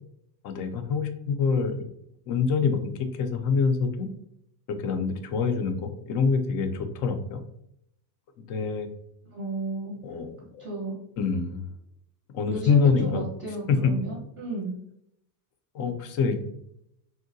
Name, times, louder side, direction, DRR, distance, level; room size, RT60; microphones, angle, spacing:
voice 1, 0.4-1.8 2.3-2.9 3.2-4.1 4.7-7.4 8.5-8.9 10.0-10.6 11.2-11.6 12.3-13.2 13.7-13.9 15.7-16.4, left 5 dB, 40° left, 7 dB, 0.4 m, -25 dB
voice 2, 9.3-10.0 10.6-11.0 12.5-14.7, right 2 dB, 25° right, -3 dB, 0.6 m, -33 dB
3.7 x 2.1 x 2.6 m, 0.75 s
cardioid pair, 140°, 47 cm